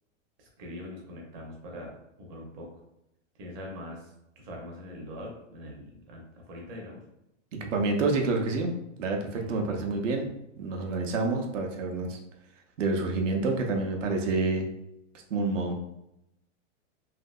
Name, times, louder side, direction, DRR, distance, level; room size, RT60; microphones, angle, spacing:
voice 1, 0.4-1.9 2.2-2.7 3.4-4.0 4.4-7.0 9.3-9.6, left 1 dB, 25° right, -1 dB, 0.6 m, -42 dB
voice 2, 7.6-8.7 9.0-10.3 10.6-12.2 12.8-14.7 15.3-15.8, right 3 dB, 80° right, 3 dB, 0.8 m, -28 dB
3.4 x 2.7 x 2.3 m, 0.83 s
supercardioid pair, 160°, 37 cm